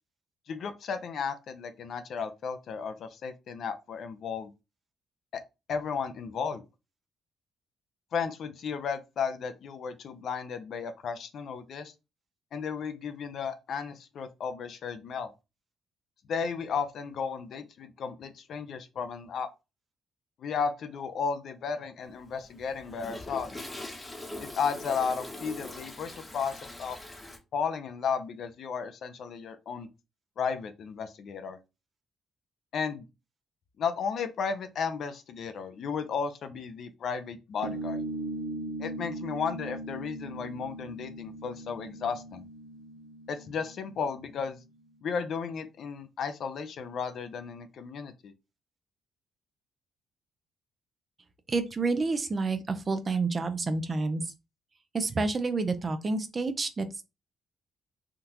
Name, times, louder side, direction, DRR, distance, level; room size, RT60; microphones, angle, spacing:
voice 1, 0.5-4.5 5.7-6.6 8.1-11.9 12.5-15.3 16.3-19.5 20.4-23.6 24.4-27.0 27.5-29.9 30.4-31.6 32.7-33.0 33.8-38.0 38.8-42.5 43.3-44.6 45.0-48.3, left 6 dB, 65° left, 0.5 m, -34 dB
Toilet flush, 22.1-27.4, left 1 dB, 20° left, 0.9 m, -42 dB
sound 1, 37.6-44.6, right 2 dB, 85° right, 0.6 m, -39 dB
voice 2, 51.5-54.3 54.9-57.0, right 3 dB, 35° right, 0.5 m, -29 dB
3.6 x 2.4 x 2.8 m
cardioid pair, 90°, 0 cm